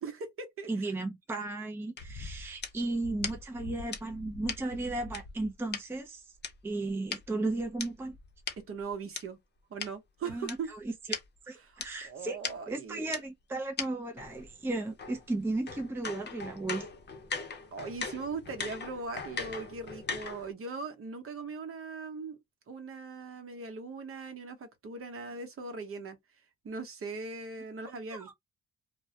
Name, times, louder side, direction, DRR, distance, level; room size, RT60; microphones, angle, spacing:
voice 1, 0.0-0.9 8.7-9.4 9.7-10.7 11.6-13.2 17.7-22.4 22.7-26.2 26.6-28.3, right 4 dB, 45° right, 0.8 m, -40 dB
voice 2, 0.7-6.2 6.6-8.2 10.2-10.9 11.5-12.4 12.7-16.9 28.1-28.3, right 2 dB, 10° right, 0.5 m, -35 dB
sound 1, 2.0-5.8 6.4-9.2 9.8-9.9 10.5-10.6 10.8-10.9 11.1-11.3 11.8-11.9 12.4-12.5 13.1-13.2 13.8-13.9 14.2-20.5, left 5 dB, 35° left, 0.7 m, -39 dB
2.2 x 2.1 x 2.7 m
cardioid pair, 90°, 30 cm